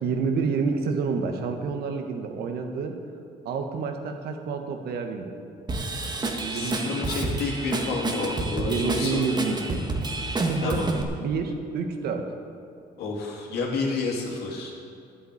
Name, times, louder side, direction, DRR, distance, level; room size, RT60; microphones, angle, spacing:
voice 1, 0.0-3.0 3.4-5.3 6.4-7.0 8.7-9.8 10.4-10.8 11.2-12.3, right 5 dB, 70° right, 4 dB, 1.5 m, -28 dB
Drum kit / Drum, 5.7-11.0, right 2 dB, 25° right, 1.5 m, -29 dB
voice 2, 6.5-9.2 10.6-10.9 13.0-14.7, left 4 dB, 70° left, -1 dB, 3.1 m, -30 dB
10.5 x 8.7 x 8.7 m, 2.6 s
cardioid pair, 110°, 17 cm